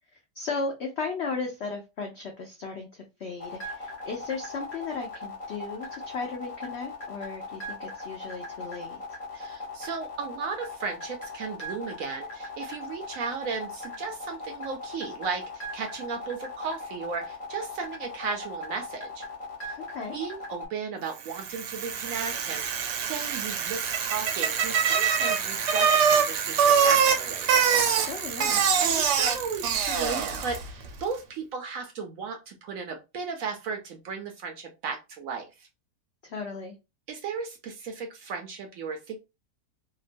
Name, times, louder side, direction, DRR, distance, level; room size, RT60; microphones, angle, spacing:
voice 1, 0.3-9.2 19.8-20.2 27.9-28.6 36.2-36.7, left 4 dB, 80° left, 2 dB, 0.6 m, -35 dB
sound 1, 3.4-20.7, left 2 dB, 45° left, 1.0 m, -39 dB
voice 2, 9.3-19.2 19.6-19.8 20.1-27.5 28.8-35.7 37.1-39.2, right 5 dB, 70° right, 3 dB, 0.8 m, -35 dB
Bicycle, 21.3-30.7, right 7 dB, 90° right, 1.3 m, -24 dB
2.9 x 2.2 x 2.5 m, 0.26 s
omnidirectional pair, 1.8 m